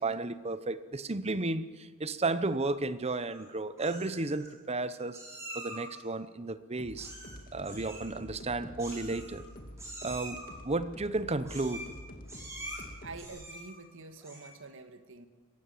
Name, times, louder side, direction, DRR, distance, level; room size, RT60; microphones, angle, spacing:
voice 1, 0.0-5.2 5.5-7.1 7.5-9.5 10.0-11.9, right 2 dB, 30° right, 0.9 m, -33 dB
Meow, 3.0-3.5 3.8-4.5 5.1-6.0 7.0-7.4 7.6-8.1 8.8-9.5 9.8-10.5 11.4-12.0 12.3-12.8 13.2-13.8 14.2-14.6, right 1 dB, 15° right, 6.4 m, -45 dB
sound 1, 6.8-13.3, equal, 40° left, 2.3 m, -48 dB
voice 2, 13.0-15.3, right 3 dB, 60° right, 1.7 m, -47 dB
22.5 x 16.0 x 7.8 m
head